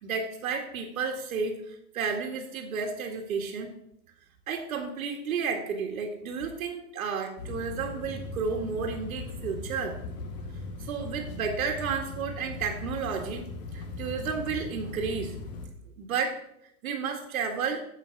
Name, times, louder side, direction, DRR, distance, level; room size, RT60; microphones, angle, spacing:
voice 1, 0.0-1.6 1.9-3.7 4.5-10.0 10.8-13.5 13.7-15.3 16.0-16.4 16.8-17.8, right 5 dB, 75° right, 3 dB, 1.8 m, -32 dB
sound 1, 7.4-15.7, left 3 dB, 30° left, 1.1 m, -39 dB
7.8 x 7.4 x 7.0 m, 0.79 s
supercardioid pair, 175°, 42 cm